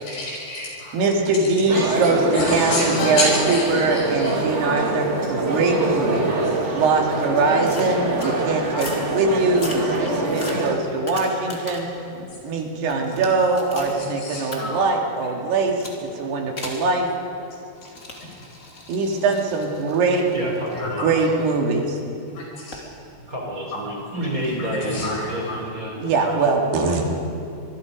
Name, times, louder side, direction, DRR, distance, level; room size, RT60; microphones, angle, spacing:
voice 1, 0.1-1.0 1.7-1.9 2.3-4.4 6.0-6.1 8.7-8.9 14.0-14.9 20.8-21.1 22.4-22.8 24.6-25.6 26.2-26.3, left 1 dB, 75° left, -3 dB, 7.9 m, -29 dB
voice 2, 0.9-11.9 12.4-17.1 18.9-20.3 21.0-22.0 26.0-27.1, right 3 dB, 80° right, 1 dB, 4.3 m, -22 dB
sound 1, 1.7-10.7, right 2 dB, 40° right, 0.9 m, -24 dB
Keyboard (musical), 3.0-5.5, left 4 dB, 60° left, 4.4 m, -36 dB
sound 2, 7.6-8.3 8.7-9.1 9.5-12.0 12.4-14.0 14.5-14.6 15.8-16.0 16.6-16.9 17.8-21.7 22.7-22.9, left 2 dB, 25° left, 2.2 m, -38 dB
voice 3, 20.3-21.3 23.3-26.4, equal, 20° right, -1 dB, 3.8 m, -29 dB
25.5 x 22.0 x 5.2 m, 2.5 s
omnidirectional pair, 4.6 m